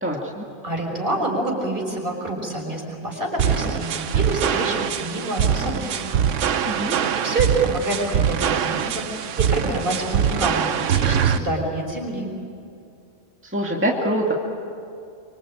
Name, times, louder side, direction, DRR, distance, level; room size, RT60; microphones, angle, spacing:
voice 1, 0.0-0.5 6.7-7.0 13.4-14.3, right 1 dB, 10° right, -2 dB, 2.1 m, -24 dB
voice 2, 0.6-6.1 7.2-12.3, right 2 dB, 45° right, 0 dB, 5.6 m, -27 dB
sound 1, 3.4-11.4, right 8 dB, 75° right, 1.2 m, -23 dB
25.5 x 24.5 x 8.9 m, 2.5 s
omnidirectional pair, 1.3 m